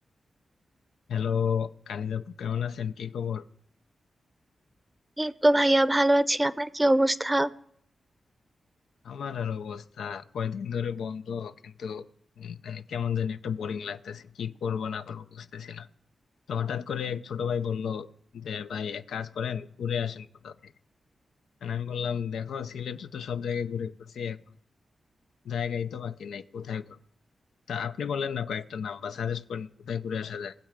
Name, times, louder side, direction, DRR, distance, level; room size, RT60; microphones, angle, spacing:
voice 1, 1.1-3.4 9.0-12.1 12.4-15.9 16.5-18.1 18.3-20.7 21.6-24.4 25.4-27.0 27.7-30.5, left 7 dB, 90° left, 0.4 m, -32 dB
voice 2, 5.2-7.5, right 1 dB, 15° right, 0.6 m, -22 dB
20.0 x 7.4 x 5.1 m
cardioid pair, 55°, 0 cm